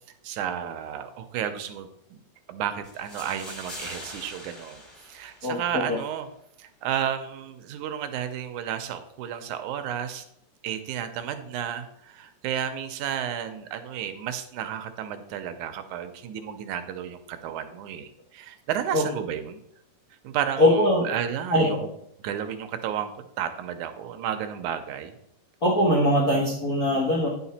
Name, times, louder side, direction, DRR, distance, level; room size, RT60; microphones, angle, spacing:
voice 1, 0.2-2.2 2.5-6.3 6.6-10.2 10.6-19.6 20.2-21.9 22.2-25.1, right 9 dB, 80° right, 8 dB, 2.0 m, -32 dB
sound 1, 2.8-5.9, left 1 dB, 20° left, 1.5 m, -42 dB
voice 2, 5.4-6.0 18.9-19.0 20.6-21.1 21.5-21.8 25.6-27.3, left 1 dB, 80° left, -4 dB, 0.8 m, -21 dB
10.0 x 5.8 x 4.2 m, 0.73 s
omnidirectional pair, 3.8 m